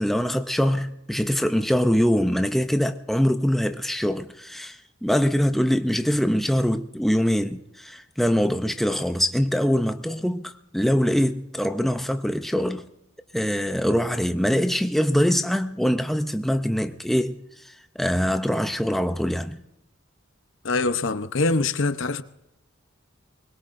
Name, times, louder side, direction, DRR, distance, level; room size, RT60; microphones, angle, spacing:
voice 1, 0.0-12.9 13.3-17.4 17.6-19.6, equal, ahead, 0.5 m, -23 dB
voice 2, 20.6-22.2, left 3 dB, 60° left, 0.8 m, -24 dB
24.0 x 21.5 x 2.6 m
head